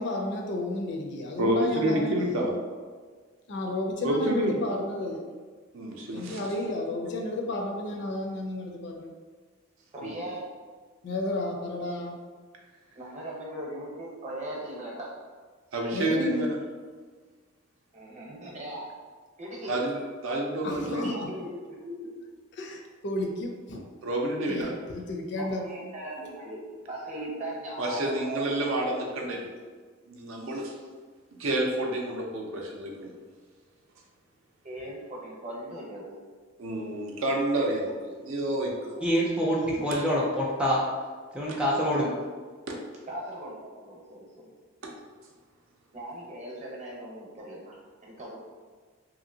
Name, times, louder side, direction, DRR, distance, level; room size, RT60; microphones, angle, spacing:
voice 1, 0.0-2.2 3.5-5.2 6.1-9.1 11.0-12.2 15.9-16.5 20.6-21.3 22.6-23.8 24.5-25.6, left 1 dB, 55° left, 1 dB, 0.5 m, -32 dB
voice 2, 1.4-2.5 4.0-4.6 5.7-6.4 10.0-10.1 15.7-16.6 19.7-21.1 24.0-24.7 27.8-29.5 30.1-30.7 31.4-33.1 36.6-39.0 41.5-41.6 42.7-42.8 44.8-44.9, right 1 dB, 75° right, 0 dB, 0.5 m, -29 dB
voice 3, 9.9-10.4 12.9-15.1 17.9-18.9 19.4-19.8 20.7-22.1 25.4-26.6 26.9-28.9 34.6-36.2 43.1-44.4 45.9-47.8 48.0-48.4, right 1 dB, 35° right, -4 dB, 0.8 m, -39 dB
voice 4, 39.0-40.8 41.3-42.1, equal, 5° right, -5 dB, 0.3 m, -25 dB
2.8 x 2.7 x 2.7 m, 1.5 s
head